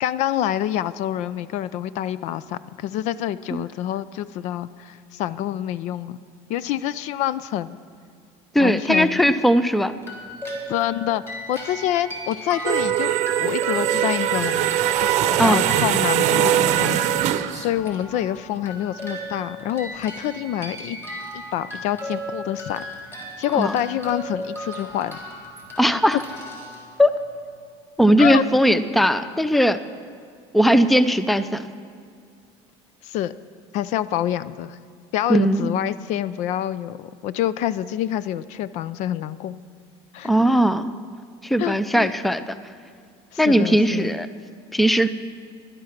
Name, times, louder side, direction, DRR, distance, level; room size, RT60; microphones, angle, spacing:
voice 1, 0.0-6.2 6.5-7.8 8.6-9.2 10.7-13.1 13.4-14.8 15.4-21.0 21.3-22.8 23.4-25.2 28.2-28.4 33.0-33.3 33.7-34.8 35.1-39.6 40.1-40.3 41.6-42.1 43.3-44.1, left 12 dB, 55° left, 17 dB, 0.4 m, -27 dB
voice 2, 8.5-9.9 15.4-15.6 23.5-23.8 25.8-26.2 27.0-27.1 28.0-29.8 30.5-31.6 35.3-35.7 40.2-40.9 41.4-42.5 43.4-44.3 44.7-45.1, equal, ahead, 13 dB, 0.5 m, -18 dB
sound 1, 10.0-27.4, equal, 20° left, 3.8 m, -36 dB
sound 2, 12.6-17.7, right 11 dB, 55° right, 0.7 m, -21 dB
11.0 x 11.0 x 5.9 m, 2.2 s
supercardioid pair, 105°, 14 cm